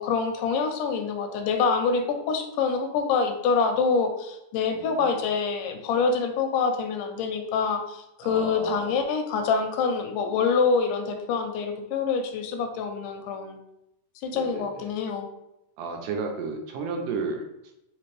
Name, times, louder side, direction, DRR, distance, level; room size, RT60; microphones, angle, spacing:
voice 1, 0.0-13.6 14.2-15.3, left 5 dB, 85° left, 5 dB, 2.1 m, -26 dB
voice 2, 4.7-5.2 8.2-8.9 14.3-14.9 15.8-17.7, right 4 dB, 80° right, 2 dB, 2.0 m, -33 dB
5.1 x 2.9 x 3.1 m, 0.87 s
omnidirectional pair, 3.8 m